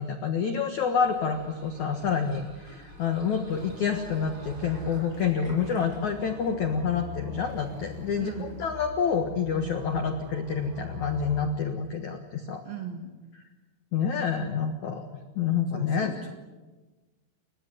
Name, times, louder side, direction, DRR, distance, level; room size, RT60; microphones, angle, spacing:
voice 1, 0.0-12.6 13.9-15.1 15.3-16.1, left 6 dB, 75° left, 6 dB, 1.7 m, -28 dB
sound 1, 0.7-6.7, right 1 dB, 15° right, 7.1 m, -48 dB
sound 2, 3.5-11.5, right 1 dB, 80° right, 4.7 m, -43 dB
voice 2, 8.1-8.6 12.6-13.3 15.7-16.3, right 7 dB, 55° right, 4 dB, 3.1 m, -39 dB
30.0 x 16.0 x 9.5 m, 1.2 s
omnidirectional pair, 5.8 m